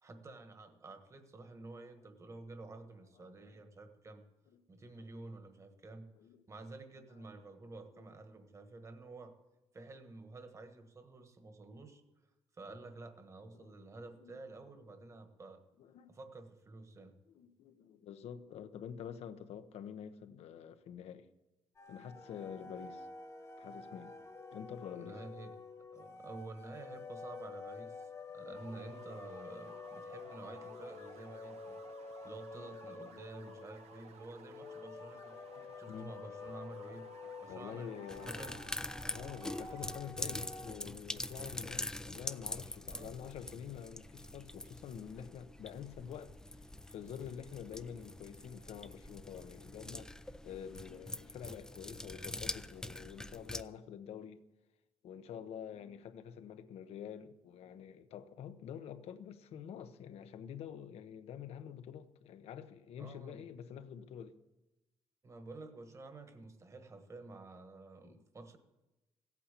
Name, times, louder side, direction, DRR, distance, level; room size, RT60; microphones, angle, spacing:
voice 1, 0.0-4.2 4.7-6.1 6.5-9.3 9.7-12.0 12.6-15.6 16.1-17.1 24.9-25.5 25.9-28.1 28.3-31.8 32.2-35.4 35.8-37.1 37.4-38.6 42.9-43.1 63.0-63.4 65.2-68.6, right 3 dB, 30° right, 1.4 m, -50 dB
voice 2, 13.5-14.3 15.8-16.1 17.3-21.3 21.9-23.1 23.6-24.2 24.5-25.2 32.6-32.7 33.0-33.5 35.6-36.1 37.5-38.6 39.1-46.4 46.9-54.4 55.0-64.4 68.0-68.2, left 8 dB, 80° left, 1.0 m, -47 dB
sound 1, 21.8-40.7, left 4 dB, 30° left, 1.3 m, -49 dB
sound 2, 28.6-39.9, right 8 dB, 85° right, 0.7 m, -58 dB
sound 3, 38.1-53.6, left 1 dB, 5° left, 0.4 m, -44 dB
16.0 x 8.6 x 8.3 m
cardioid pair, 140°, 10 cm